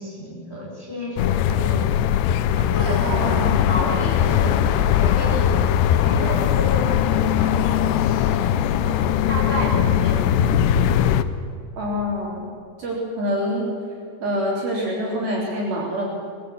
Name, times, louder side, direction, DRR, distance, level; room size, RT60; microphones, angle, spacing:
voice 1, 0.0-1.9 2.5-5.5 6.0-10.6, equal, 10° left, -5 dB, 7.0 m, -31 dB
sound 1, 1.2-11.2, left 10 dB, 85° left, 2.4 m, -20 dB
voice 2, 3.0-3.6 11.8-12.5 12.8-13.7 14.2-16.1, equal, 50° right, -4 dB, 5.2 m, -26 dB
24.5 x 22.0 x 7.1 m, 2.3 s
omnidirectional pair, 5.9 m